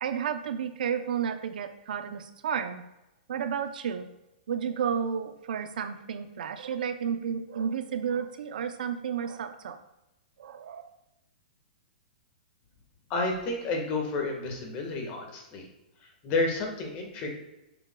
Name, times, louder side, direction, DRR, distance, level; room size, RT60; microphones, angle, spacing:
voice 1, 0.0-2.8 3.3-4.1 4.5-9.8 10.4-10.9, right 7 dB, 70° right, 9 dB, 0.6 m, -32 dB
voice 2, 13.1-15.6 16.2-17.3, left 3 dB, 30° left, 2 dB, 1.5 m, -30 dB
8.1 x 7.0 x 2.3 m, 0.94 s
hypercardioid pair, 155°, 5 cm